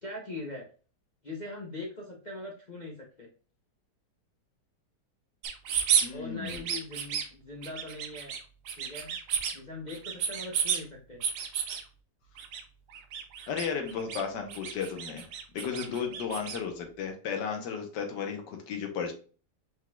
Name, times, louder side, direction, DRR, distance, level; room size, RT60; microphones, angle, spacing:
voice 1, 0.0-0.6 1.2-3.3 6.1-8.3 8.8-9.2 9.5-11.2 15.9-16.0, left 2 dB, 45° left, -3 dB, 0.5 m, -41 dB
sound 1, 5.4-6.1 6.4-7.2 7.6-8.4 8.7-9.6 9.9-10.8 11.2-11.8 12.4-12.6 12.9-14.2 14.5-16.6, right 8 dB, 70° right, 1.2 m, -31 dB
voice 2, 6.0-6.7 13.5-15.2 15.5-19.1, left 6 dB, 85° left, 4 dB, 1.5 m, -34 dB
5.3 x 3.7 x 2.3 m, 0.39 s
omnidirectional pair, 1.8 m